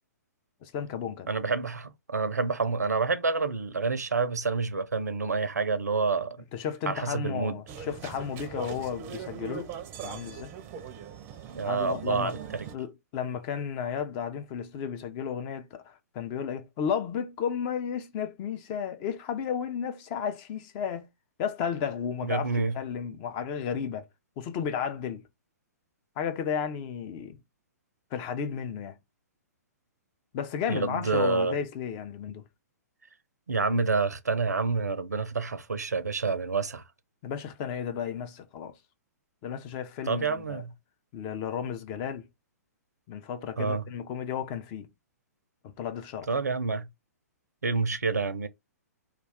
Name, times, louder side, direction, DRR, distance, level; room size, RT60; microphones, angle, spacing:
voice 1, 0.6-1.3 6.5-9.7 10.0-10.5 11.6-12.3 12.7-21.1 21.4-22.5 22.7-24.0 24.4-25.2 26.2-27.4 28.1-29.0 30.3-32.4 37.2-38.7 39.4-40.6 41.1-42.3 43.1-44.9 45.6-46.3, left 7 dB, 30° left, 0.4 m, -33 dB
voice 2, 1.3-6.4 6.9-7.6 11.5-12.7 22.2-22.8 30.7-31.6 33.5-36.8 40.0-40.7 43.6-43.9 46.3-46.9 47.6-48.5, right 4 dB, 75° right, 0.5 m, -28 dB
sound 1, 7.7-12.8, right 7 dB, 25° right, 0.5 m, -41 dB
2.3 x 2.3 x 3.4 m
figure-of-eight pair, 120°, 9 cm